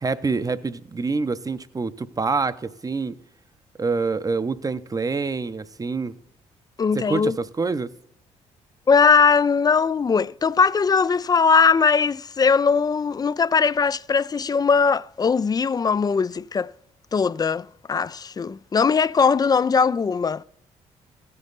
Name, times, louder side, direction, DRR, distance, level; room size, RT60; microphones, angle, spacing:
voice 1, 0.0-3.2 3.8-6.2 6.9-7.9, right 4 dB, 25° right, 0.7 m, -26 dB
voice 2, 6.8-7.4 8.9-16.7 17.1-20.4, left 5 dB, 25° left, 0.3 m, -20 dB
16.0 x 5.4 x 3.9 m
hypercardioid pair, 55°, 15 cm